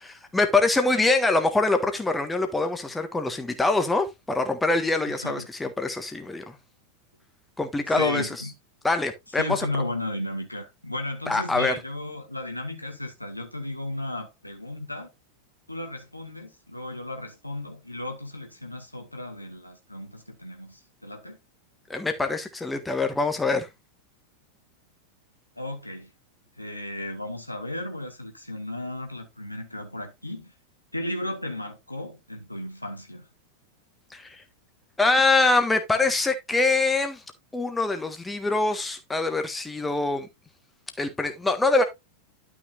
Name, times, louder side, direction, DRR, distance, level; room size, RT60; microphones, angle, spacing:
voice 1, 0.1-6.6 7.6-8.3 8.8-9.7 11.3-11.7 21.9-23.7 34.1-34.4 35.0-37.2 37.5-40.3 41.0-41.8, left 3 dB, 10° left, 1.5 m, -24 dB
voice 2, 7.9-8.5 9.4-15.1 15.7-21.4 25.6-26.1 26.6-30.5 30.9-33.3, left 1 dB, 85° left, 1.7 m, -34 dB
11.5 x 6.0 x 2.6 m
figure-of-eight pair, 90°, 0 cm